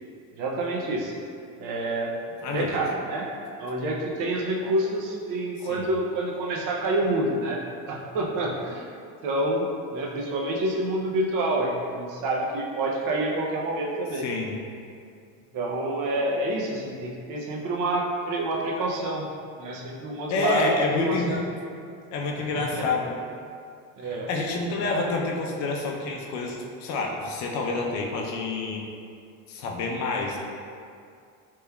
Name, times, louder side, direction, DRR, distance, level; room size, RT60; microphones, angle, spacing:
voice 1, 0.4-1.1 1.6-2.1 2.4-3.3 3.6-7.6 7.9-8.9 9.2-14.3 15.5-19.2 19.6-20.7 21.0-21.4 22.4-22.9 24.0-24.3, right 2 dB, 60° right, -1 dB, 0.6 m, -28 dB
voice 2, 2.4-2.8 5.7-5.9 14.2-14.6 20.3-21.4 22.1-23.2 24.0-28.9 29.5-30.4, left 3 dB, 55° left, 0 dB, 0.5 m, -28 dB
3.4 x 3.0 x 2.2 m, 2.4 s
cardioid pair, 150°, 36 cm